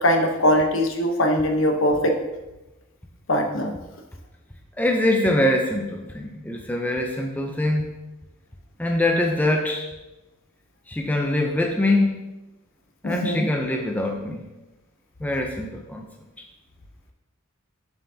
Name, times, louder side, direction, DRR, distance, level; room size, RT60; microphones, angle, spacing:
voice 1, 0.0-2.1 3.3-3.7 13.0-13.4, equal, 65° left, 4 dB, 0.9 m, -21 dB
voice 2, 4.8-7.9 8.8-9.9 10.9-12.2 13.0-14.5 15.2-16.1, left 1 dB, 10° left, 1 dB, 0.5 m, -23 dB
7.0 x 6.7 x 2.8 m, 1.0 s
head